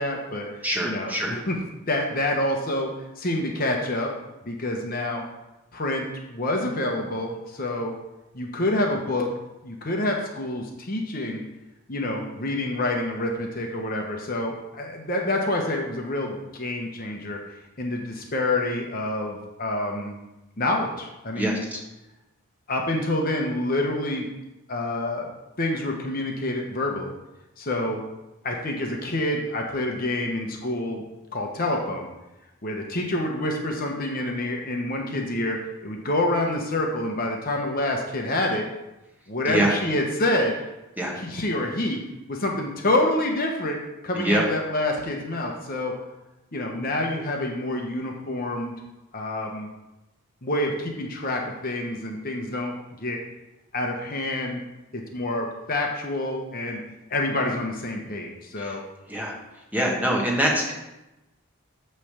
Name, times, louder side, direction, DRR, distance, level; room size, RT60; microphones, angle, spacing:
voice 1, 0.0-0.5 0.8-1.6 1.9-2.9 3.2-4.1 4.4-5.2 5.7-6.0 6.3-7.9 8.3-9.3 9.6-11.4 11.9-17.4 17.8-20.2 20.6-21.7 22.7-24.3 24.7-25.3 25.6-27.1 27.6-28.0 28.4-31.0 31.3-32.1 32.6-35.6 35.8-38.7 39.3-40.5 41.2-42.0 42.3-43.8 44.0-45.9 46.5-48.7 49.1-49.7 50.4-53.2 53.7-54.6 54.9-56.8 57.1-58.8, left 1 dB, 40° left, 1 dB, 0.9 m, -27 dB
voice 2, 0.6-1.3 21.3-21.8 39.4-39.7 41.0-41.1 44.1-44.4 58.6-58.8 59.1-59.3 59.7-60.7, right 1 dB, 10° right, -2 dB, 1.2 m, -24 dB
9.0 x 3.3 x 6.6 m, 0.97 s
head